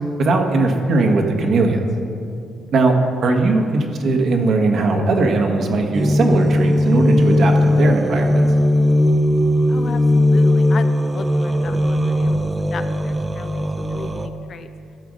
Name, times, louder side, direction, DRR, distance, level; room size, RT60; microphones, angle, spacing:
voice 1, 0.2-1.8 2.7-2.9 3.2-8.5, right 3 dB, 60° right, 3 dB, 1.4 m, -19 dB
sound 1, 5.9-14.3, left 1 dB, 20° right, 0.6 m, -18 dB
voice 2, 9.7-14.7, left 5 dB, 55° left, 9 dB, 0.6 m, -35 dB
13.5 x 5.0 x 6.3 m, 2.5 s
cardioid pair, 90°, 0 cm